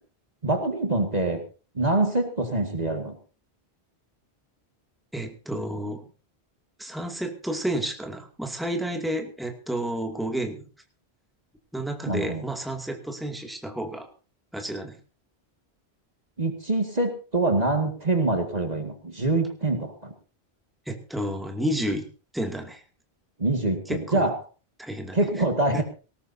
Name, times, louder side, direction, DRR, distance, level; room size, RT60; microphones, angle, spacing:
voice 1, 0.4-1.4 1.7-3.2 12.1-12.4 16.4-20.1 23.4-24.4 25.1-25.8, right 2 dB, 40° right, 4 dB, 2.1 m, -25 dB
voice 2, 5.1-6.1 6.8-10.6 11.7-14.1 14.5-15.0 20.9-22.0 22.3-22.8 23.9-24.3 24.8-25.2 25.7-25.8, right 1 dB, ahead, 3 dB, 2.3 m, -31 dB
19.0 x 18.5 x 2.8 m, 0.35 s
omnidirectional pair, 1.1 m